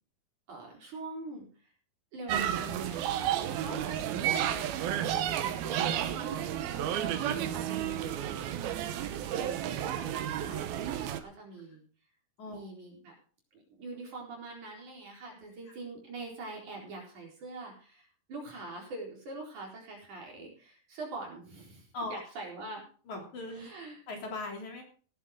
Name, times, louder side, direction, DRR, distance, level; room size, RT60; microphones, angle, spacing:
voice 1, 0.5-1.7 2.1-8.8 9.2-11.8 12.5-13.2 13.5-22.8 23.5-24.0, right 3 dB, 55° right, -1 dB, 5.6 m, -44 dB
sound 1, 2.3-11.2, right 10 dB, 85° right, 2.9 m, -32 dB
voice 2, 23.1-23.7 24.1-24.8, left 2 dB, 50° left, 1 dB, 4.5 m, -39 dB
17.5 x 11.0 x 3.8 m, 0.40 s
omnidirectional pair, 4.3 m